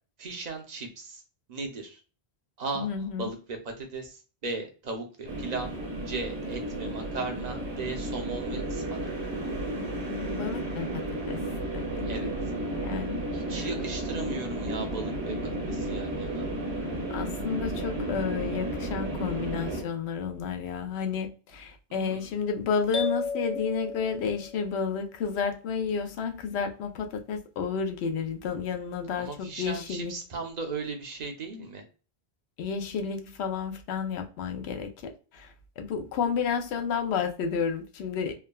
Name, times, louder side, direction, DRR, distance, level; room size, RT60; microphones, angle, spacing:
voice 1, 0.2-1.2 1.5-2.0 2.6-2.9 3.1-5.7 6.1-9.1 12.0-12.3 13.3-15.3 15.7-16.5 21.9-22.3 29.2-31.8, right 3 dB, 45° right, 0.7 m, -37 dB
voice 2, 2.7-3.3 10.1-11.4 11.7-12.3 12.8-13.7 17.1-30.1 32.6-34.9 35.3-38.3, left 6 dB, 90° left, 0.8 m, -31 dB
sound 1, 5.3-19.8, right 1 dB, 90° right, 1.2 m, -33 dB
sound 2, 22.9-24.8, left 5 dB, 45° left, 0.5 m, -33 dB
3.4 x 2.1 x 2.2 m
omnidirectional pair, 1.1 m